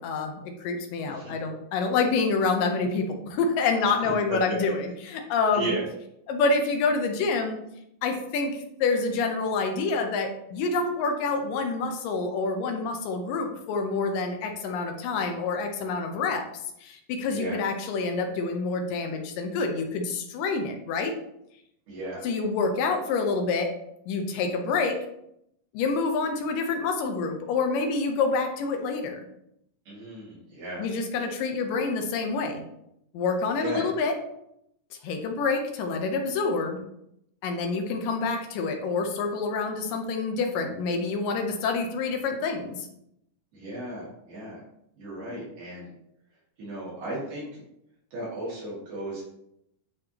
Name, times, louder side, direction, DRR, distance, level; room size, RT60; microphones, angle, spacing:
voice 1, 0.0-5.7 6.3-7.6 8.0-16.4 16.8-21.1 22.2-23.7 24.1-25.0 25.7-29.2 30.8-32.6 33.1-34.2 35.0-36.8 37.4-42.9, left 4 dB, 80° left, 4 dB, 2.4 m, -27 dB
voice 2, 4.0-4.4 5.5-5.9 17.3-17.6 21.9-22.3 29.9-30.9 33.6-33.8 43.5-44.6 45.0-45.9 46.6-47.6 48.1-49.3, right 2 dB, 75° right, -6 dB, 3.9 m, -35 dB
10.0 x 3.4 x 2.9 m, 0.78 s
omnidirectional pair, 3.9 m